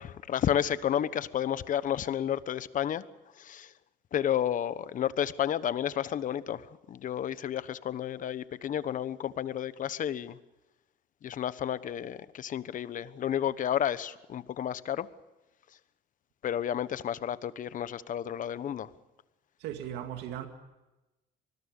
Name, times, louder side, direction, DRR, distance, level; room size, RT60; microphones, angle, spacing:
voice 1, 0.0-3.0 3.4-3.7 4.1-10.4 11.2-15.1 16.4-18.9, left 10 dB, 50° left, 1.1 m, -31 dB
voice 2, 19.6-20.5, right 10 dB, 90° right, 2.2 m, -37 dB
25.0 x 20.5 x 6.6 m
cardioid pair, 110°, 17 cm